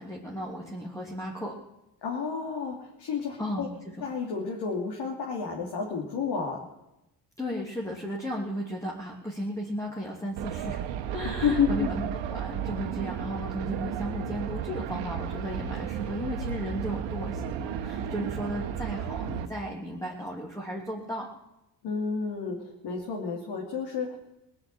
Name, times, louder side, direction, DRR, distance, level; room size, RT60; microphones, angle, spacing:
voice 1, 0.0-1.6 3.4-3.7 4.0-4.1 7.4-10.8 11.1-12.0 12.3-21.3, equal, 5° left, -3 dB, 2.9 m, -35 dB
voice 2, 2.0-3.7 4.0-6.6 11.2-11.9 21.8-24.2, left 6 dB, 65° left, -1 dB, 3.0 m, -30 dB
sound 1, 10.4-19.5, right 8 dB, 80° right, 1.3 m, -33 dB
19.0 x 6.9 x 9.0 m, 0.90 s
supercardioid pair, 75°, 43 cm